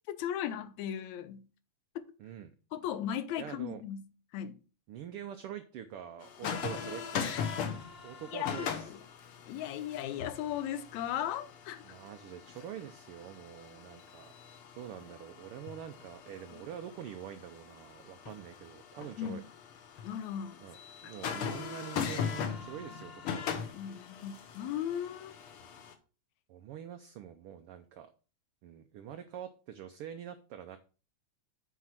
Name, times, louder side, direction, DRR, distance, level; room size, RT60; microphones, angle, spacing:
voice 1, 0.1-1.4 2.0-2.1 2.7-4.0 4.3-4.6 6.4-6.6 8.3-9.0 9.5-11.8 19.2-19.4 20.0-20.6 23.7-25.4, left 10 dB, 75° left, 2.0 m, -37 dB
voice 2, 2.2-2.5 3.4-3.8 4.9-7.3 8.0-8.9 11.8-14.3 14.7-19.4 20.6-23.4 26.5-28.1 28.6-30.8, right 10 dB, 85° right, 1.2 m, -45 dB
sound 1, 6.2-25.9, left 7 dB, 60° left, 1.5 m, -40 dB
7.9 x 4.7 x 5.8 m
omnidirectional pair, 3.4 m